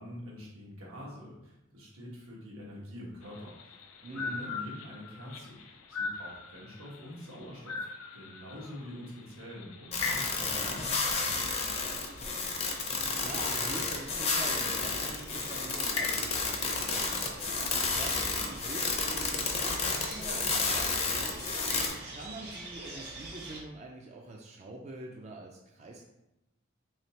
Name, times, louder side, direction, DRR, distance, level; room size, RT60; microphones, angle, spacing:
voice 1, 0.0-3.6 4.1-5.6 5.9-7.9 8.1-11.2, left 1 dB, 85° right, -4 dB, 1.3 m, -45 dB
sound 1, 3.2-16.4, left 4 dB, 90° left, 0.5 m, -42 dB
voice 2, 4.0-4.5 11.7-12.1 12.4-12.7 13.2-17.1 17.6-21.8 22.1-26.0, right 2 dB, 35° right, 0 dB, 0.4 m, -45 dB
sound 2, 9.9-21.9, left 4 dB, 30° left, 0.5 m, -31 dB
sound 3, 11.5-23.6, right 2 dB, 50° right, 1.0 m, -46 dB
4.0 x 3.1 x 2.8 m, 0.92 s
head